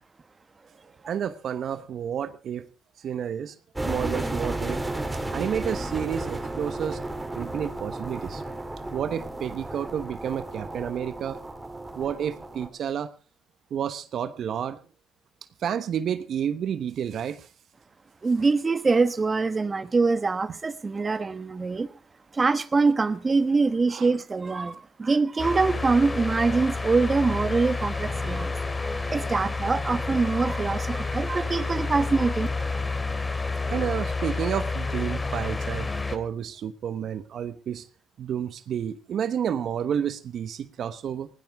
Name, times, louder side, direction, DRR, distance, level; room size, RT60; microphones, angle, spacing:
voice 1, 1.0-2.7 3.0-3.6 3.9-4.8 5.3-7.0 7.3-8.4 8.9-11.4 11.9-13.1 13.7-14.8 15.6-17.5 23.9-24.1 33.5-37.9 38.2-41.3, right 8 dB, 65° right, 1.0 m, -30 dB
sound 1, 3.8-12.7, right 2 dB, 15° right, 3.6 m, -33 dB
voice 2, 18.2-21.9 22.3-28.5 29.1-32.5, right 4 dB, 30° right, 1.1 m, -24 dB
sound 2, 25.4-36.2, left 3 dB, 25° left, 2.3 m, -29 dB
20.0 x 17.0 x 3.5 m
supercardioid pair, 65°, 0 cm